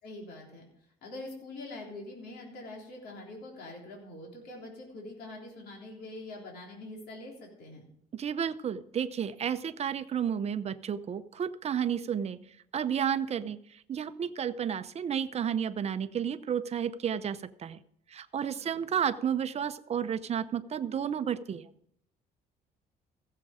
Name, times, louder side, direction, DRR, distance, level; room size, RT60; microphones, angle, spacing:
voice 1, 0.0-7.9 18.5-19.0, left 2 dB, 70° left, -1 dB, 3.5 m, -44 dB
voice 2, 8.1-12.4 12.7-17.8 18.1-21.7, right 8 dB, 40° right, 12 dB, 0.7 m, -32 dB
15.5 x 7.5 x 5.0 m, 0.72 s
cardioid pair, 110°, 17 cm